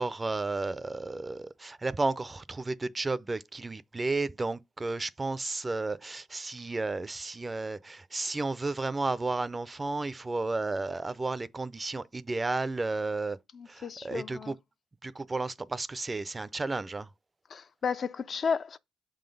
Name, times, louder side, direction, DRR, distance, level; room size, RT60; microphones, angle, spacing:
voice 1, 0.0-13.4 13.7-14.6 15.0-17.1, right 3 dB, 25° right, 0.4 m, -33 dB
voice 2, 13.5-14.5 17.5-18.8, left 6 dB, 45° left, 0.4 m, -33 dB
7.1 x 3.9 x 5.2 m
cardioid pair, 90°, 0 cm